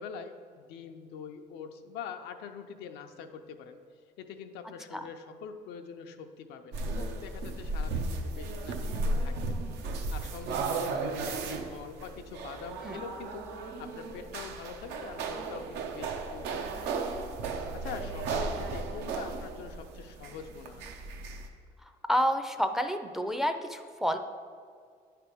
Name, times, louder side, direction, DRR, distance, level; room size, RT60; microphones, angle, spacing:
voice 1, 0.0-3.8 4.2-9.6 10.1-17.0 17.7-20.9, left 6 dB, 85° left, 6 dB, 0.6 m, -44 dB
sound 1, 6.7-21.5, right 3 dB, 85° right, 0.7 m, -35 dB
voice 2, 22.1-24.2, equal, ahead, 6 dB, 0.4 m, -29 dB
9.2 x 3.4 x 6.0 m, 2.1 s
cardioid pair, 110°, 17 cm